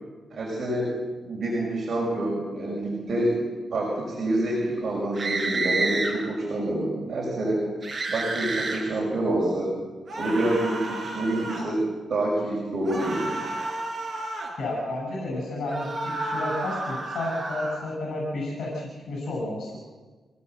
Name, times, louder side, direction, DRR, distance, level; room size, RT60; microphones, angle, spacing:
voice 1, 0.3-1.0 1.2-3.3 3.7-7.7 8.1-9.7 10.1-13.3, right 1 dB, 45° right, -4 dB, 5.9 m, -27 dB
sound 1, 5.1-6.1 7.8-8.8 10.1-11.7 12.8-14.5 15.7-17.8, right 2 dB, 30° right, 5.4 m, -30 dB
voice 2, 14.6-19.8, left 2 dB, 65° left, -2 dB, 6.6 m, -31 dB
26.0 x 17.5 x 8.0 m, 1.4 s
wide cardioid pair, 140°, 0 cm